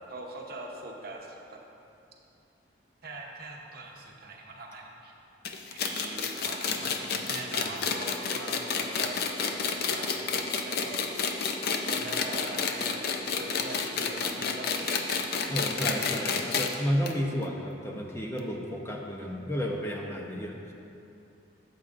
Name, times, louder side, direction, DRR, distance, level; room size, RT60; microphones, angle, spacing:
voice 1, 0.1-1.6 3.0-5.1 5.7-9.2 9.7-11.0 11.8-14.9 15.3-15.5, right 2 dB, 55° right, 0 dB, 0.9 m, -42 dB
sound 1, 5.5-16.7 17.1-17.2 17.4-17.5 18.4-18.5, left 5 dB, 55° left, 0.5 m, -30 dB
voice 2, 15.5-20.7, equal, 15° left, -1 dB, 0.6 m, -32 dB
12.5 x 7.5 x 2.5 m, 2.7 s
head